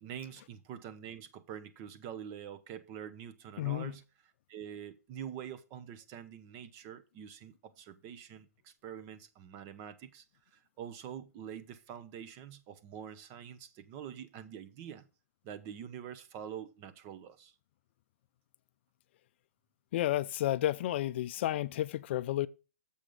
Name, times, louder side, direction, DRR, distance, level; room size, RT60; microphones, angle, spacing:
voice 1, 0.0-4.0 4.5-10.2 10.5-15.1 15.4-17.5, right 9 dB, 30° right, 0.9 m, -45 dB
voice 2, 3.6-4.0 19.9-22.5, left 14 dB, 45° left, 0.4 m, -31 dB
7.1 x 6.0 x 5.2 m
hypercardioid pair, 140°, 8 cm